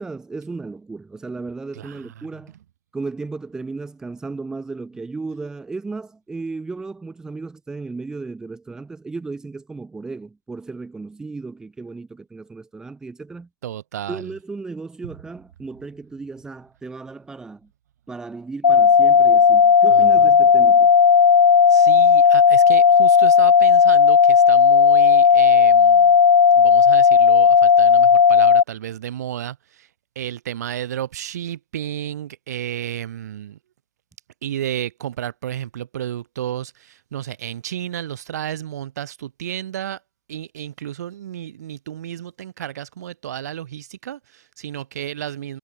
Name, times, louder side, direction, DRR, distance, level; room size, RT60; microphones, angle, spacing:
voice 1, 0.0-2.5 2.9-13.5 14.1-17.7 18.1-20.9, right 3 dB, 5° right, 2.4 m, -35 dB
voice 2, 1.7-2.3 13.6-14.3 15.0-15.1 19.9-20.3 21.7-26.2 26.5-29.9 30.2-33.6 34.4-40.0 40.3-45.6, right 11 dB, 50° right, 4.2 m, -32 dB
sound 1, 18.6-28.6, left 6 dB, 85° left, 0.5 m, -13 dB
hypercardioid pair, 145°, 11 cm